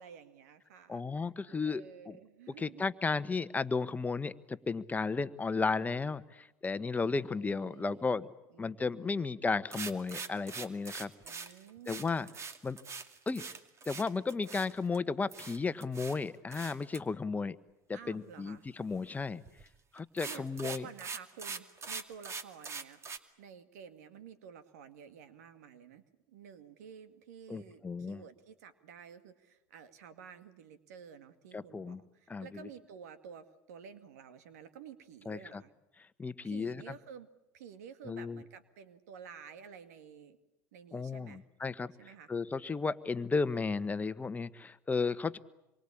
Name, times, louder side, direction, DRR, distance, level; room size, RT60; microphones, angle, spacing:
voice 1, 0.0-2.8 7.0-8.1 8.5-9.3 11.2-12.4 17.9-18.6 20.2-23.0 23.4-35.7 36.4-37.3 37.5-40.4 40.7-41.4 42.0-42.3, right 7 dB, 80° right, 11 dB, 2.1 m, -52 dB
voice 2, 0.9-2.1 2.6-8.3 8.6-11.1 11.9-12.3 12.6-12.8 13.3-13.4 13.9-17.6 17.9-19.4 19.9-20.8 27.5-28.2 31.5-32.0 32.3-32.6 35.3-35.6 36.2-36.8 38.0-38.4 40.9-41.9 42.3-45.4, left 4 dB, 20° left, 13 dB, 1.3 m, -34 dB
sound 1, 9.7-15.0 15.3-16.2 16.5-17.0 19.5-19.7 20.0-23.2, right 5 dB, 35° right, 2.4 m, -42 dB
27.0 x 23.5 x 8.7 m, 0.92 s
hypercardioid pair, 85°, 8 cm